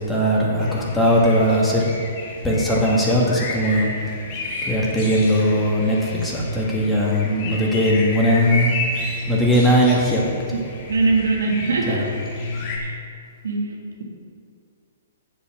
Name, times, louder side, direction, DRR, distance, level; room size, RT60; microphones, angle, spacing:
voice 1, 0.0-1.9 2.4-3.9 4.6-8.7 9.2-10.2 10.5-10.6 11.9-12.0, equal, 5° left, -4 dB, 1.9 m, -19 dB
sound 1, 0.6-12.8, left 2 dB, 40° left, 1.8 m, -31 dB
voice 2, 10.9-12.0 12.8-12.9 13.4-13.8, right 3 dB, 75° right, 0 dB, 1.7 m, -21 dB
7.5 x 6.9 x 5.9 m, 2.3 s
figure-of-eight pair, 120°, 0 cm